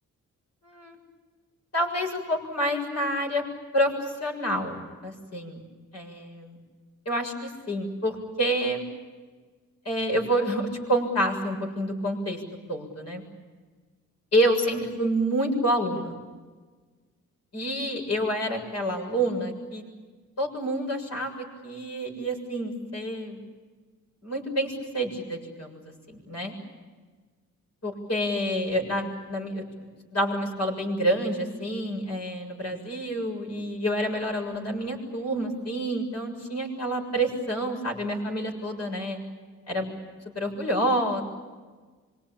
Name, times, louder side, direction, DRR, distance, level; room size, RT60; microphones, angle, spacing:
voice 1, 0.6-1.0 1.7-3.4 3.7-5.6 5.9-6.6 7.1-8.8 9.8-12.4 12.7-13.2 14.3-16.1 17.5-19.8 20.4-23.4 24.2-25.8 26.1-26.5 27.8-29.6 30.1-39.2 39.7-40.0 40.3-41.2, right 1 dB, 55° left, 2 dB, 7.3 m, -28 dB
26.0 x 23.5 x 8.9 m, 1.4 s
cardioid pair, 90°, 31 cm